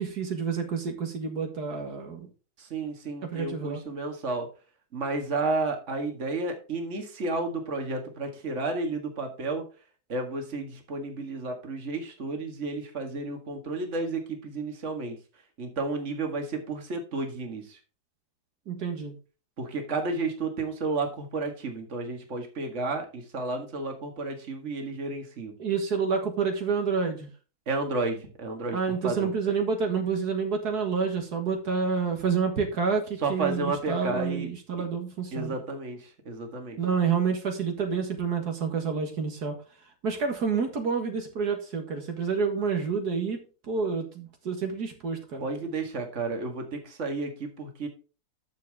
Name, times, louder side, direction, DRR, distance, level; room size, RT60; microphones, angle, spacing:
voice 1, 0.0-2.3 3.2-3.8 18.7-19.1 25.6-27.3 28.7-35.5 36.8-39.5 40.0-43.4 43.7-45.4, right 5 dB, 75° right, 4 dB, 2.1 m, -28 dB
voice 2, 2.6-4.5 4.9-9.6 10.1-15.2 15.6-17.8 19.6-25.5 27.7-29.3 33.2-34.5 35.3-36.8 45.4-47.9, right 3 dB, 45° right, 4 dB, 2.1 m, -32 dB
10.5 x 7.1 x 3.5 m, 0.35 s
omnidirectional pair, 1.7 m